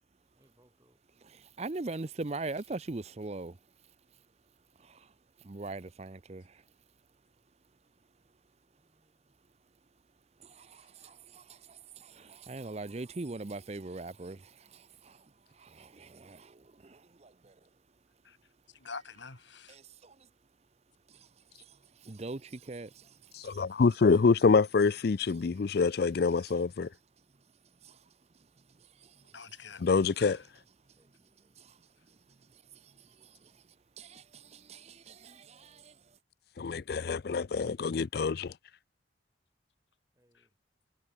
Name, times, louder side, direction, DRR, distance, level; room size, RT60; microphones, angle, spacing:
voice 1, 0.4-1.0 4.8-4.9 8.6-9.4 30.8-31.6 33.2-33.6 40.1-40.5, equal, 15° right, 4.5 m, -71 dB
voice 2, 1.2-3.6 4.8-5.1 5.4-6.6 10.4-15.2 15.6-17.5 19.7-20.1 22.0-23.1 23.4-23.6 27.8-27.9 31.6-31.7 34.0-35.9, right 3 dB, 35° right, 0.6 m, -42 dB
voice 3, 18.7-19.8 29.3-29.8 30.2-30.4 40.3-40.4, left 4 dB, 75° left, 3.2 m, -46 dB
voice 4, 23.3-26.9 29.8-30.4 36.6-38.5, left 4 dB, 55° left, 0.4 m, -26 dB
head